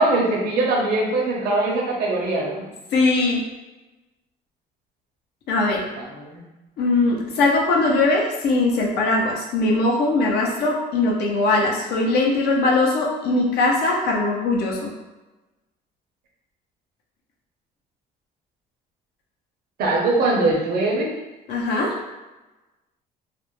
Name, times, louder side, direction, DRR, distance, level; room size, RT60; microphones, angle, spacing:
voice 1, 0.0-2.6 6.1-6.4 19.8-21.1, right 2 dB, 65° right, -2 dB, 0.7 m, -21 dB
voice 2, 2.9-3.4 5.5-5.8 6.8-14.9 21.5-21.9, left 2 dB, 75° left, -1 dB, 0.7 m, -20 dB
2.5 x 2.1 x 3.0 m, 1.1 s
cardioid pair, 110°, 17 cm